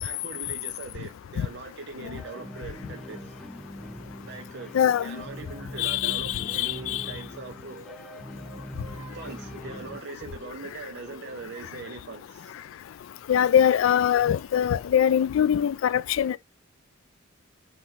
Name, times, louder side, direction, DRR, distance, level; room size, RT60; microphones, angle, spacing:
voice 1, 0.0-3.3 4.2-4.7 5.0-7.8 9.1-12.5, right 4 dB, 60° right, 0.6 m, -41 dB
sound 1, 2.1-10.0, equal, ahead, 0.4 m, -42 dB
voice 2, 4.7-5.2 5.8-7.0 13.3-16.4, left 9 dB, 80° left, 0.3 m, -23 dB
Singing, 6.4-11.6, right 1 dB, 25° right, 1.5 m, -51 dB
4.0 x 2.8 x 4.3 m
head